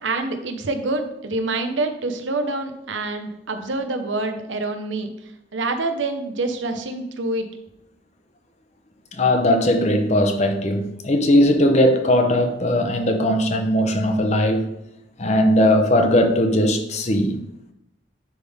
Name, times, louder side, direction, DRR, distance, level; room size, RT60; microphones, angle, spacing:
voice 1, 0.0-5.1 5.5-7.5, right 2 dB, 85° right, 0.8 m, -26 dB
voice 2, 9.1-14.7 15.2-17.4, left 1 dB, 35° left, 0.7 m, -19 dB
10.5 x 3.6 x 3.5 m
head